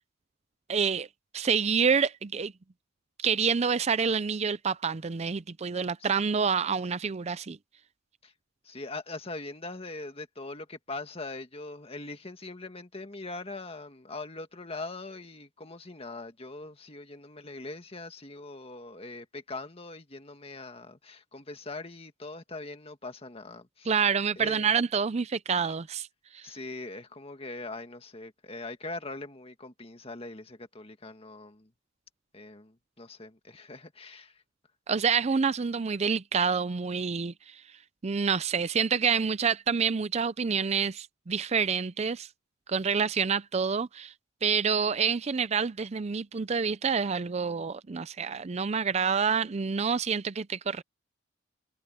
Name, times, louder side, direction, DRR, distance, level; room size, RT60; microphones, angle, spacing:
voice 1, 0.7-1.1 1.3-2.5 3.2-7.6 23.9-26.1 26.3-26.5 34.9-37.6 38.0-42.3 42.7-44.1 44.4-50.8, right 6 dB, 35° right, 0.5 m, -27 dB
voice 2, 8.6-23.9 24.4-24.7 26.4-31.7 32.3-34.4, left 2 dB, 30° left, 1.8 m, -41 dB
head